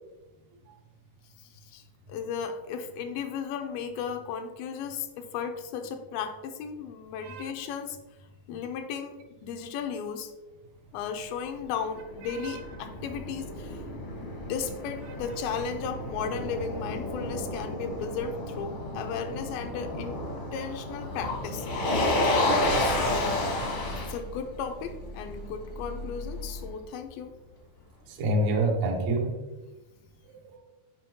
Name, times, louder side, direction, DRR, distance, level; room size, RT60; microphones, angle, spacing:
voice 1, 2.1-8.0 8.5-9.2 9.4-10.3 10.9-13.8 14.2-20.2 20.5-21.7 22.7-23.4 23.9-27.3, left 6 dB, 85° left, 6 dB, 2.4 m, -35 dB
Motor vehicle (road), 11.6-26.7, left 1 dB, 70° left, 1.2 m, -31 dB
voice 2, 28.1-29.3 30.4-30.6, right 1 dB, 80° right, 0 dB, 1.6 m, -27 dB
7.2 x 5.1 x 2.7 m, 1.1 s
omnidirectional pair, 4.2 m